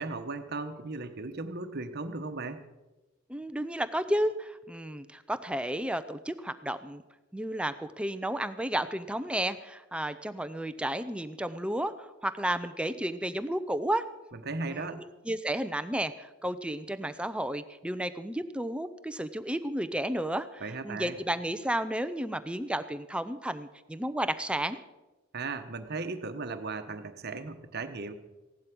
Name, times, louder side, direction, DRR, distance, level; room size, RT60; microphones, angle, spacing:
voice 1, 0.0-2.6 14.5-15.0 20.6-21.2 25.3-28.1, right 3 dB, 50° right, 8 dB, 1.1 m, -36 dB
voice 2, 3.3-7.0 7.3-14.0 14.7-24.8, right 1 dB, 5° right, 11 dB, 0.6 m, -32 dB
16.0 x 11.5 x 6.0 m, 1.1 s
head